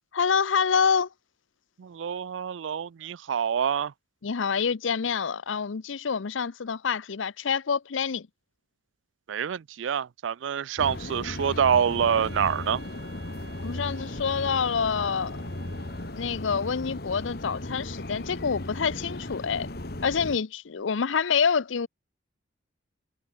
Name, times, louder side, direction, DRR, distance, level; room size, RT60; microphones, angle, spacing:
voice 1, 0.1-1.1 4.2-8.3 13.6-15.4 16.1-19.7 20.0-21.9, left 6 dB, 85° left, 0.6 m, -27 dB
voice 2, 1.8-3.9 9.3-12.8, right 7 dB, 85° right, 0.4 m, -26 dB
sound 1, 10.8-20.4, left 1 dB, 55° left, 1.8 m, -36 dB
Wind instrument woodwind instrument, 12.1-16.5, right 4 dB, 65° right, 3.6 m, -51 dB
head